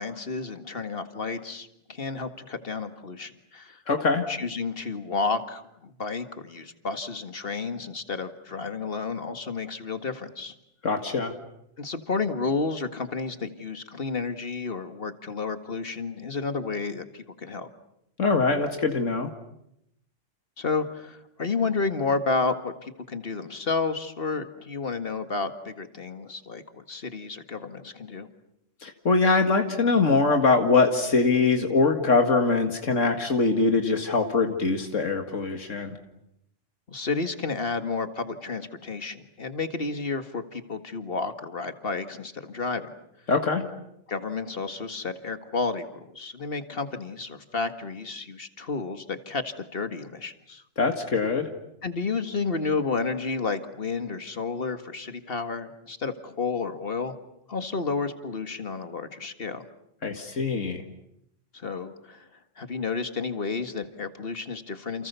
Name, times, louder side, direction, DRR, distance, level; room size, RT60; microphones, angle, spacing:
voice 1, 0.0-3.8 4.3-10.5 11.8-17.7 20.6-28.3 36.9-42.9 44.1-50.6 51.8-57.1 57.5-59.7 61.5-62.3 62.6-65.1, left 4 dB, 50° left, 9 dB, 2.1 m, -31 dB
voice 2, 3.9-4.2 10.8-11.3 18.2-19.3 28.8-36.0 43.3-43.6 50.8-51.5 60.0-60.8, left 4 dB, 75° left, 5 dB, 2.3 m, -23 dB
29.5 x 29.5 x 7.0 m, 0.79 s
omnidirectional pair, 1.3 m